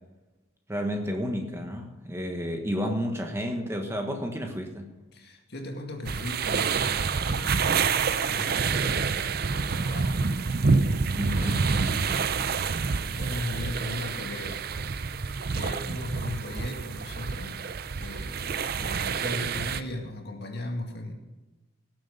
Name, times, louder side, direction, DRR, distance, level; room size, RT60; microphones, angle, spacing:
voice 1, 0.7-4.9 11.1-11.7, equal, 15° right, 3 dB, 1.3 m, -31 dB
voice 2, 5.1-10.3 11.2-17.6 18.0-21.1, left 1 dB, 50° left, 2 dB, 2.2 m, -38 dB
sound 1, 6.0-19.8, right 5 dB, 50° right, 0.5 m, -27 dB
18.0 x 7.8 x 5.4 m, 1.1 s
head